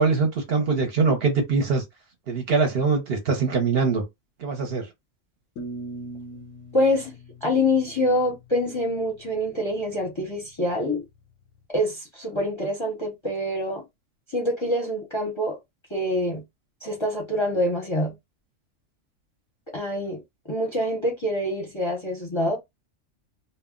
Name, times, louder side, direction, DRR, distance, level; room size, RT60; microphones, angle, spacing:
voice 1, 0.0-1.8 2.3-4.0 4.4-4.9, right 4 dB, 60° right, 0.8 m, -22 dB
sound 1, 5.6-8.5, right 1 dB, 90° left, 1.0 m, -40 dB
voice 2, 6.7-7.1 7.4-11.0 11.7-13.8 14.3-15.6 15.9-16.4 16.8-18.1 19.7-20.2 20.5-22.6, left 1 dB, 30° left, 0.6 m, -25 dB
2.2 x 2.1 x 3.5 m
omnidirectional pair, 1.3 m